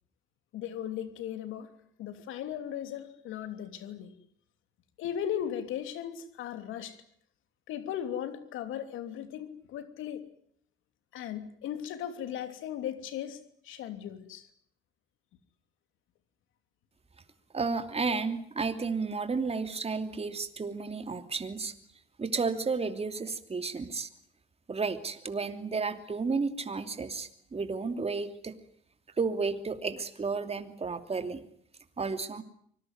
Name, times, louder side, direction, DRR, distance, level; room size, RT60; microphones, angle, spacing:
voice 1, 0.5-1.7 2.0-4.1 5.0-7.0 7.7-10.2 11.1-13.4 13.6-14.5, left 10 dB, 90° left, 10 dB, 3.1 m, -37 dB
voice 2, 17.5-21.7 22.2-24.1 24.7-28.6 29.2-31.4 32.0-32.4, right 4 dB, 30° right, 9 dB, 2.9 m, -32 dB
25.0 x 20.0 x 9.5 m, 0.64 s
cardioid pair, 90°, 20 cm